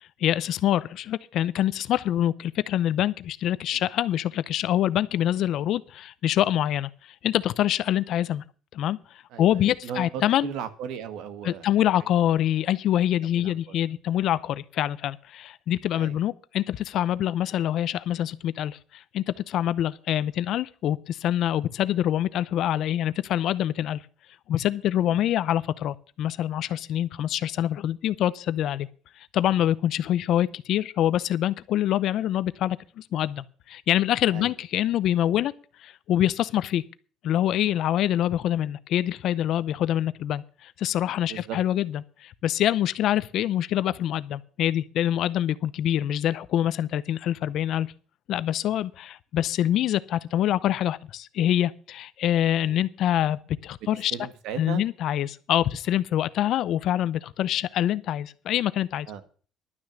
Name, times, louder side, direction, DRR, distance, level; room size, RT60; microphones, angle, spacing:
voice 1, 0.0-6.9 7.2-8.4 8.7-9.0 9.4-10.5 11.4-24.0 24.5-28.9 29.3-35.5 35.8-36.8 37.2-47.9 48.3-54.1 54.6-59.1, left 11 dB, 50° left, 0.6 m, -25 dB
voice 2, 9.3-11.6 12.0-12.1 13.3-13.7 16.0-16.1 25.0-25.1 34.3-34.5 41.3-41.6 52.6-52.8 53.9-54.8 59.1-59.2, right 8 dB, 65° right, 1.5 m, -37 dB
12.0 x 6.2 x 8.6 m
cardioid pair, 165°, 0 cm